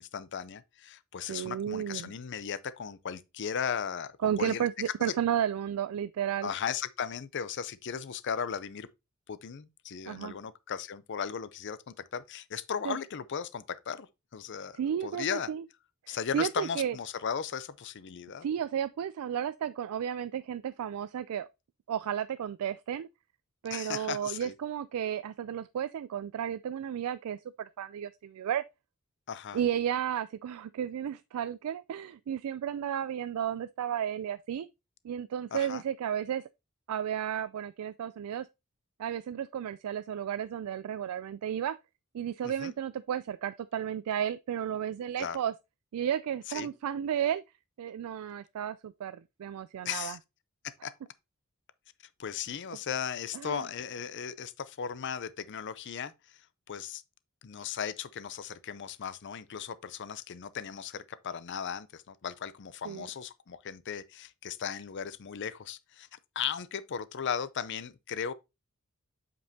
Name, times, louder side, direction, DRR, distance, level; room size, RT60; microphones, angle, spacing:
voice 1, 0.0-5.1 6.4-8.9 9.3-14.1 14.3-15.5 16.1-18.5 23.7-24.5 29.3-29.6 35.5-35.8 42.4-42.7 45.2-45.4 46.5-46.7 49.8-50.2 50.8-50.9 52.2-56.4 56.7-57.0 57.4-68.3, left 7 dB, 55° left, 0.5 m, -36 dB
voice 2, 1.3-2.1 4.2-6.5 10.1-10.3 12.8-13.0 14.7-15.6 16.0-16.9 18.4-21.5 21.9-23.1 23.6-28.6 29.5-34.7 35.0-36.4 36.9-38.5 39.0-41.8 42.1-45.5 45.9-47.4 47.8-50.2 53.3-53.6 62.9-63.1, right 9 dB, 90° right, 0.3 m, -33 dB
7.8 x 5.2 x 2.7 m
head